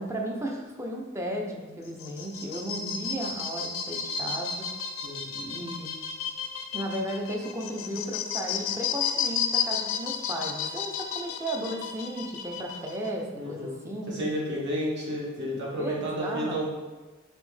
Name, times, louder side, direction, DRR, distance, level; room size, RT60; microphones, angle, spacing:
voice 1, 0.0-4.7 5.3-5.9 6.7-14.1 15.8-16.6, right 1 dB, 15° right, 0 dB, 0.5 m, -34 dB
sound 1, 1.8-13.1, left 7 dB, 80° left, 0.5 m, -32 dB
voice 2, 13.3-13.7 14.1-16.7, equal, 60° right, -5 dB, 1.3 m, -31 dB
4.2 x 3.3 x 3.2 m, 1.2 s
head